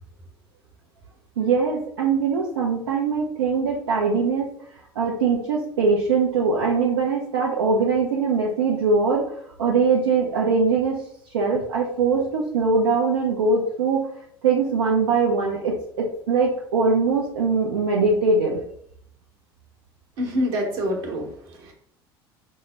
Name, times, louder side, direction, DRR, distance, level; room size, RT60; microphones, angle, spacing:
voice 1, 1.4-4.5 5.0-9.3 9.6-11.0 11.3-14.1 14.4-18.6, right 4 dB, 80° right, -2 dB, 0.6 m, -22 dB
voice 2, 20.2-21.7, equal, 65° right, 0 dB, 1.1 m, -26 dB
5.4 x 2.0 x 3.3 m, 0.68 s
hypercardioid pair, 65°, 13 cm